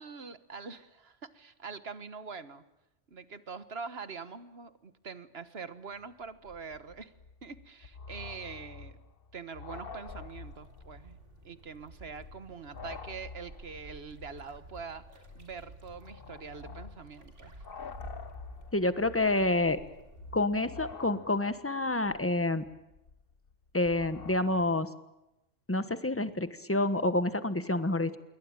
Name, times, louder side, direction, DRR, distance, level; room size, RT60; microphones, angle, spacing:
voice 1, 0.0-2.6 3.1-7.1 7.4-9.0 9.3-11.2 11.4-17.5, right 5 dB, 60° right, 12 dB, 1.6 m, -44 dB
sound 1, 5.9-6.0 6.2-11.1 11.4-11.5 12.0-24.7, left 5 dB, 55° left, 1.4 m, -48 dB
sound 2, 10.0-20.4, right 1 dB, 85° right, 3.9 m, -53 dB
voice 2, 18.7-19.8 20.3-22.6 23.7-24.9 25.7-28.2, left 2 dB, 10° left, 11 dB, 1.3 m, -28 dB
27.5 x 22.5 x 8.9 m, 0.92 s
omnidirectional pair, 1.2 m